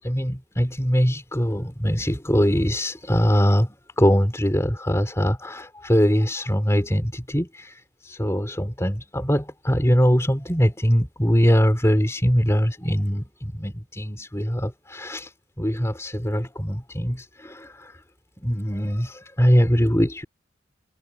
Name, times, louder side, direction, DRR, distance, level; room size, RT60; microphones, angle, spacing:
voice 1, 0.0-15.3 15.6-17.9 18.4-20.2, equal, 15° left, 3.6 m, -22 dB
head